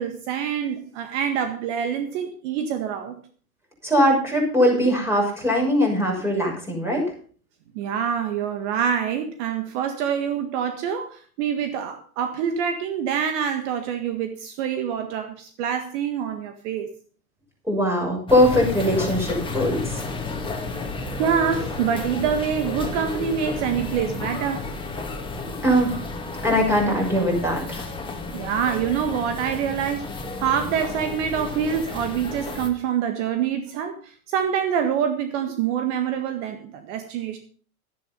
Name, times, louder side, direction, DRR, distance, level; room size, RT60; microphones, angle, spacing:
voice 1, 0.0-3.2 7.7-16.9 21.2-24.7 28.3-30.1 30.4-37.4, right 8 dB, 50° right, 1.8 m, -26 dB
voice 2, 3.8-7.0 17.7-20.1 25.6-26.1 26.4-27.9, equal, 5° right, 6.2 m, -21 dB
sound 1, 18.3-32.7, left 3 dB, 10° left, 2.5 m, -32 dB
12.5 x 10.0 x 5.5 m
hypercardioid pair, 105°, 44 cm